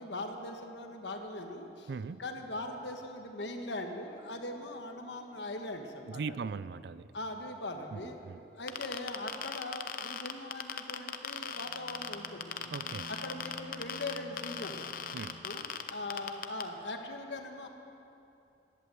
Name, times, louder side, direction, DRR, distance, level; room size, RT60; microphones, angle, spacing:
voice 1, 0.0-1.9 2.2-6.4 7.1-8.2 8.5-12.6 13.1-14.9 15.4-17.7, left 2 dB, 80° left, 4 dB, 1.3 m, -40 dB
voice 2, 1.9-2.2 6.1-7.1 7.9-8.4 12.7-13.1 15.1-15.4, right 5 dB, 65° right, 17 dB, 0.4 m, -39 dB
sound 1, 8.7-16.6, left 7 dB, 50° left, 0.8 m, -38 dB
Bowed string instrument, 11.3-16.1, left 1 dB, 45° right, 2.7 m, -52 dB
16.5 x 11.0 x 7.7 m, 2.8 s
head